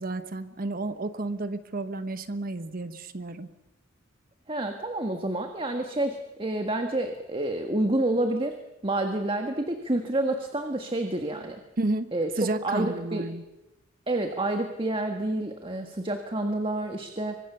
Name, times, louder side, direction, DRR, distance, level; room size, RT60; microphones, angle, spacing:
voice 1, 0.0-3.5 11.8-12.1 12.4-13.4, right 2 dB, 45° right, 11 dB, 1.1 m, -31 dB
voice 2, 4.5-8.6 8.8-11.6 12.1-12.3 12.6-13.2 14.1-17.4, right 1 dB, 25° right, 5 dB, 1.6 m, -28 dB
26.5 x 24.0 x 6.9 m, 0.95 s
head